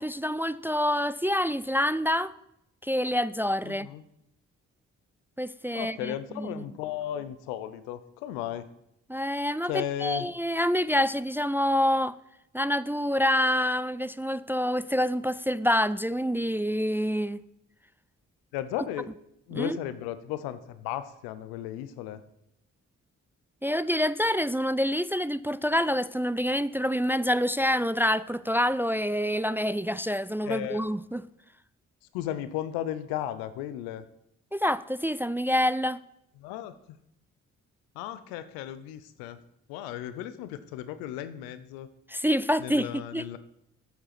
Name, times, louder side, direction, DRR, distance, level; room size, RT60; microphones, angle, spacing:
voice 1, 0.0-2.3 2.8-3.9 5.4-6.6 9.1-12.2 12.5-17.4 19.5-19.8 23.6-31.2 34.5-36.0 42.1-43.4, equal, 5° right, 0.3 m, -27 dB
voice 2, 3.6-4.0 5.7-8.7 9.7-10.3 18.5-19.1 19.5-22.2 30.4-30.8 32.1-34.0 36.4-37.0 37.9-39.4 39.7-41.9 42.6-43.4, left 12 dB, 85° left, 0.7 m, -35 dB
8.4 x 7.5 x 5.8 m
hypercardioid pair, 40°, 36 cm